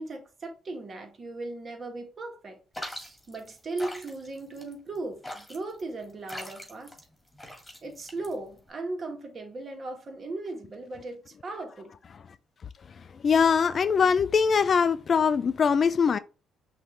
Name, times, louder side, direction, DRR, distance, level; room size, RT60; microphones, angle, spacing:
voice 1, 0.0-2.6 2.9-6.9 7.8-11.9, right 2 dB, 45° right, 1.6 m, -37 dB
sound 1, 2.7-8.7, left 1 dB, 10° left, 2.0 m, -42 dB
voice 2, 13.2-16.2, left 6 dB, 50° left, 0.4 m, -22 dB
5.7 x 2.7 x 3.3 m
hypercardioid pair, 55°, 0 cm